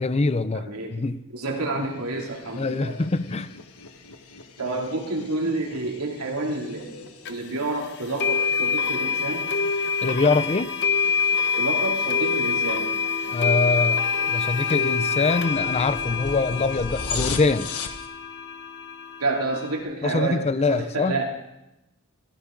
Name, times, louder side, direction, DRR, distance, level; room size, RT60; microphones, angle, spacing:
voice 1, 0.0-1.2 2.6-3.5 10.0-10.7 13.3-14.0 14.3-17.7 20.0-21.2, left 3 dB, 30° left, 0.5 m, -24 dB
voice 2, 0.5-1.0 1.3-3.0 4.6-9.5 11.6-12.9 19.2-21.2, right 2 dB, 85° right, 2.8 m, -29 dB
sound 1, 1.8-18.1, left 4 dB, 75° left, 1.3 m, -40 dB
sound 2, 7.2-7.3 8.2-19.8, left 5 dB, 50° left, 1.2 m, -26 dB
15.5 x 15.0 x 3.8 m
head